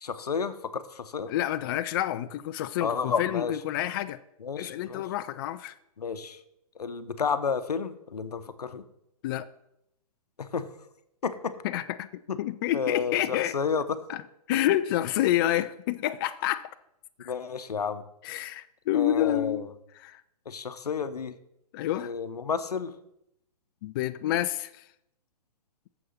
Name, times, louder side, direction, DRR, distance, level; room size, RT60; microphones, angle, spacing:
voice 1, 0.0-1.3 2.8-3.5 4.4-5.0 6.0-6.4 6.8-8.8 10.4-10.7 11.2-11.5 12.3-12.4 12.7-14.0 17.2-18.0 18.9-19.7 20.5-21.3 22.0-22.9, left 6 dB, 85° left, 0.8 m, -31 dB
voice 2, 1.3-4.2 4.6-5.7 9.2-9.5 11.6-13.6 14.1-14.2 14.5-16.7 17.2-17.3 18.2-19.6 19.9-20.2 21.7-22.1 23.8-24.8, left 13 dB, 35° left, 0.4 m, -28 dB
6.9 x 6.2 x 7.1 m
hypercardioid pair, 130°, 20 cm